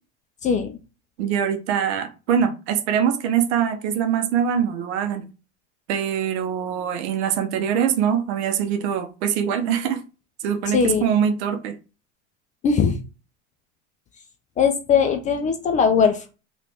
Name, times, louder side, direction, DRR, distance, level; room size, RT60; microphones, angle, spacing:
voice 1, 0.4-0.8 10.7-11.0 12.6-13.0 14.6-16.3, left 6 dB, 20° left, 0.3 m, -20 dB
voice 2, 1.2-5.3 5.9-10.0 10.4-11.8, right 8 dB, 65° right, 0.8 m, -23 dB
3.0 x 2.4 x 3.4 m
hypercardioid pair, 110°, 36 cm